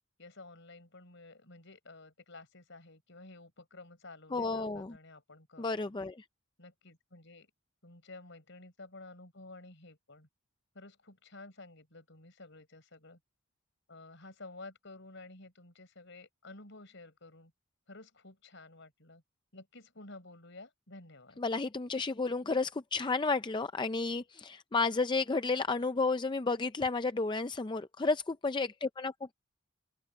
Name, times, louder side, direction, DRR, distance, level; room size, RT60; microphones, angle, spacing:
voice 1, 0.2-5.9 6.6-7.5 7.8-10.3 10.7-13.2 13.9-17.5 17.9-19.2 19.5-21.4, left 2 dB, 60° left, 5.4 m, -52 dB
voice 2, 4.3-4.9 5.6-6.2 21.4-29.3, left 3 dB, 20° left, 0.4 m, -32 dB
open air
head